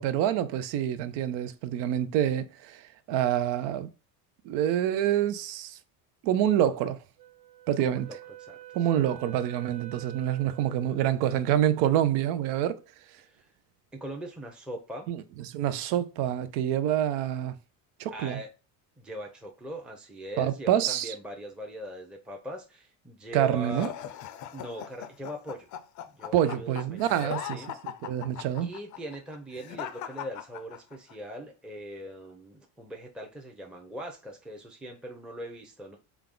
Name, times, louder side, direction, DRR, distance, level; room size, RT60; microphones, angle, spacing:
voice 1, 0.0-3.9 4.4-5.8 6.2-7.0 7.7-8.1 8.7-12.8 15.1-17.5 18.0-18.4 20.4-21.1 23.3-23.9 26.3-27.4 28.0-28.7, right 11 dB, 75° right, 0.6 m, -27 dB
Wind instrument woodwind instrument, 7.2-11.2, right 12 dB, 55° right, 1.0 m, -47 dB
voice 2, 7.8-8.9 13.2-13.5 13.9-15.1 18.1-18.5 19.0-23.9 24.5-25.7 26.0-27.7 28.6-36.0, equal, ahead, 0.6 m, -41 dB
sound 1, 23.7-31.1, left 10 dB, 45° left, 0.5 m, -40 dB
3.5 x 2.3 x 3.8 m
supercardioid pair, 105°, 41 cm